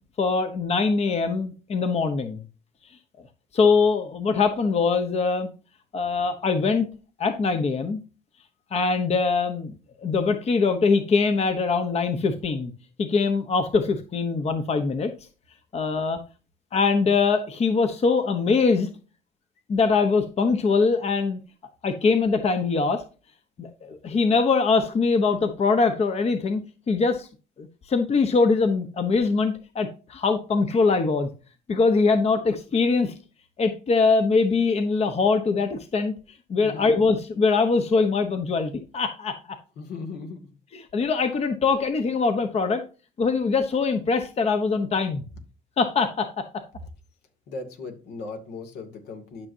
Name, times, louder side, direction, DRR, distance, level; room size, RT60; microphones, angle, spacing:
voice 1, 0.2-2.4 2.9-3.0 3.5-5.5 5.9-6.9 7.2-8.0 8.7-12.7 13.0-15.1 15.7-16.2 16.7-18.9 19.7-21.4 21.8-23.0 23.6-26.6 26.9-27.3 27.6-31.3 31.7-33.1 33.6-39.6 40.9-42.8 43.2-45.2 45.8-46.5, left 4 dB, 40° left, 7 dB, 1.0 m, -23 dB
voice 2, 36.6-37.0 39.8-40.5 47.5-49.5, left 3 dB, 75° left, 4 dB, 2.4 m, -37 dB
12.0 x 6.1 x 2.8 m, 0.34 s
cardioid pair, 110°, 17 cm